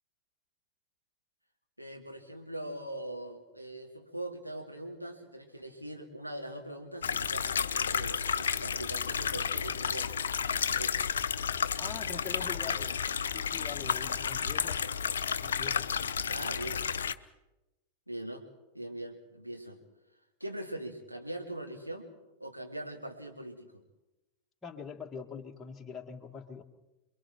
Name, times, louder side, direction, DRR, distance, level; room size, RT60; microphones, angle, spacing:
voice 1, 1.8-10.1 10.8-11.1 16.3-16.8 18.1-18.4 18.7-19.8 20.4-22.1 22.4-23.7, right 1 dB, 90° right, 1 dB, 2.6 m, -41 dB
sound 1, 7.0-17.1, left 7 dB, 65° left, 0.6 m, -32 dB
voice 2, 11.8-13.0 13.3-14.8 15.4-15.9 24.6-26.6, left 6 dB, 15° left, 2 dB, 1.9 m, -43 dB
28.0 x 22.5 x 4.5 m, 1.0 s
figure-of-eight pair, 90°, 0 cm